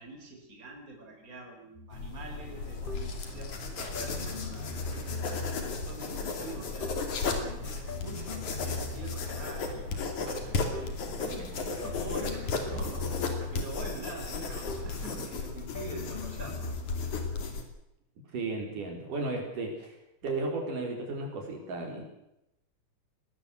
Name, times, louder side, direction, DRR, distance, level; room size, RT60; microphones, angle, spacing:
voice 1, 0.0-4.7 5.2-16.7, right 2 dB, 25° right, 2 dB, 4.8 m, -45 dB
sound 1, 1.8-2.0 2.9-3.3 3.9-5.8 6.8-7.2 7.9-9.6 10.7-11.1 11.8-13.7 14.7-15.1 15.7-17.6, left 3 dB, 20° left, 1.6 m, -39 dB
sound 2, 1.9-17.6, left 4 dB, 65° left, 4.1 m, -35 dB
sound 3, 2.2-15.3, right 4 dB, 60° right, 7.1 m, -48 dB
voice 2, 18.3-19.9 20.2-22.0, right 3 dB, 75° right, 2 dB, 5.9 m, -34 dB
21.5 x 18.5 x 7.9 m, 0.85 s
omnidirectional pair, 3.7 m